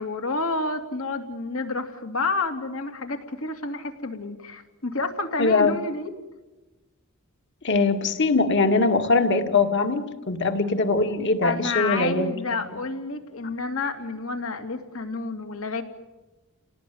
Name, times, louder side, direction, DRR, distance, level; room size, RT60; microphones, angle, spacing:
voice 1, 0.0-6.1 11.4-15.8, left 3 dB, 75° left, 6 dB, 2.7 m, -29 dB
voice 2, 5.4-5.8 7.6-12.3, left 3 dB, 55° left, 6 dB, 2.1 m, -22 dB
29.5 x 18.0 x 9.4 m, 1.1 s
head